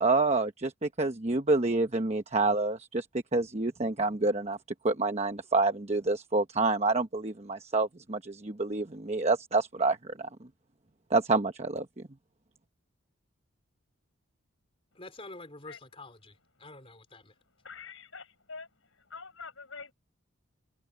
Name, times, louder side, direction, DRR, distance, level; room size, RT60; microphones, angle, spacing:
voice 1, 0.0-3.0 3.3-4.6 4.8-10.3 11.1-11.9, right 3 dB, 30° right, 1.0 m, -28 dB
voice 2, 14.9-17.3, left 2 dB, 30° left, 3.9 m, -47 dB
voice 3, 17.6-19.9, left 5 dB, 70° left, 6.3 m, -46 dB
head